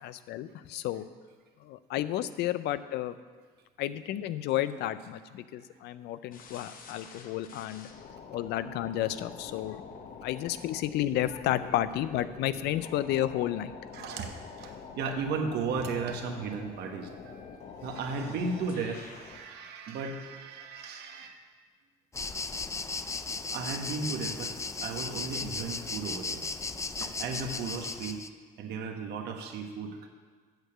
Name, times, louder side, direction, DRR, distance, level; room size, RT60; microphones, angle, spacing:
voice 1, 0.0-1.1 1.6-3.1 3.8-7.9 8.3-9.8 10.2-13.7, left 12 dB, 80° left, 14 dB, 0.5 m, -31 dB
sound 1, 6.3-19.4, left 5 dB, 55° left, 1.1 m, -46 dB
voice 2, 13.9-21.3 23.5-24.5 24.8-26.4 27.0-28.2 28.6-30.1, right 4 dB, 75° right, 4 dB, 1.3 m, -35 dB
sound 2, 22.1-28.3, left 4 dB, 15° left, 0.4 m, -36 dB
8.0 x 6.7 x 7.7 m, 1.6 s
cardioid pair, 110°, 17 cm